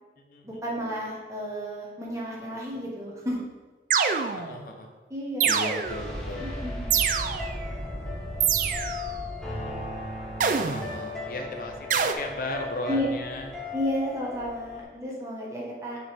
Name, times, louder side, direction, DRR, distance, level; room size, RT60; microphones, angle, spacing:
voice 1, 0.4-3.4 5.1-5.8 6.4-7.0 12.9-13.1 13.7-16.0, equal, 15° right, -4 dB, 1.2 m, -32 dB
sound 1, 3.9-4.6 5.4-6.1 6.9-7.6 8.4-9.1 10.4-11.0 11.9-12.1, right 7 dB, 45° right, 0.3 m, -25 dB
voice 2, 4.3-4.9 5.4-6.6 10.6-13.5, left 2 dB, 50° left, 3 dB, 0.8 m, -36 dB
sound 2, 5.8-14.8, left 2 dB, 5° left, 1.0 m, -36 dB
6.1 x 4.8 x 3.5 m, 1.3 s
head